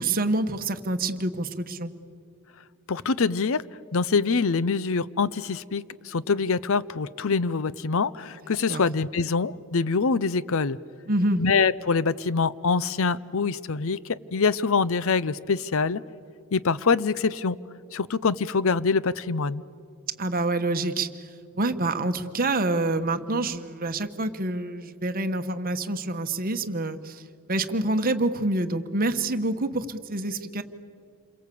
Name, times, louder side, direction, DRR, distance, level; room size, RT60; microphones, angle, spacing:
voice 1, 0.0-1.9 8.7-8.8 11.1-11.4 20.2-21.1 21.5-27.2 27.5-30.6, right 2 dB, 40° right, 8 dB, 1.1 m, -27 dB
voice 2, 2.9-3.6 3.9-10.8 11.4-16.0 16.5-17.6 17.9-19.6, left 4 dB, 60° left, 18 dB, 0.6 m, -25 dB
28.0 x 23.0 x 8.4 m, 2.4 s
head